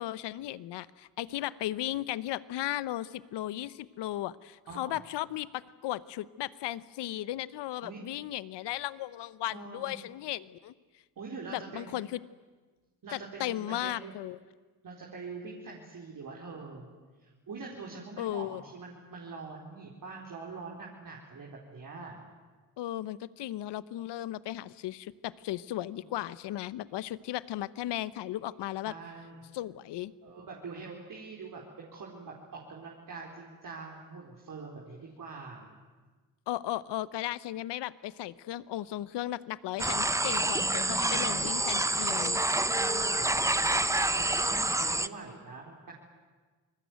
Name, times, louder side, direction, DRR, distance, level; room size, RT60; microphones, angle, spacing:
voice 1, 0.0-10.7 11.5-12.2 13.1-14.4 18.2-18.6 22.8-28.9 29.5-30.1 36.5-42.4, left 14 dB, 80° left, 18 dB, 1.0 m, -36 dB
voice 2, 4.7-5.0 7.8-8.1 9.5-9.9 11.2-12.0 13.0-14.1 14.8-16.9 17.2-22.2 28.8-29.4 30.2-35.8 39.7-40.0 42.7-45.9, right 4 dB, 50° right, -3 dB, 4.7 m, -44 dB
sound 1, 39.8-45.1, right 2 dB, 5° right, 0.8 m, -28 dB
28.0 x 20.5 x 9.4 m, 1.4 s
cardioid pair, 75°, 41 cm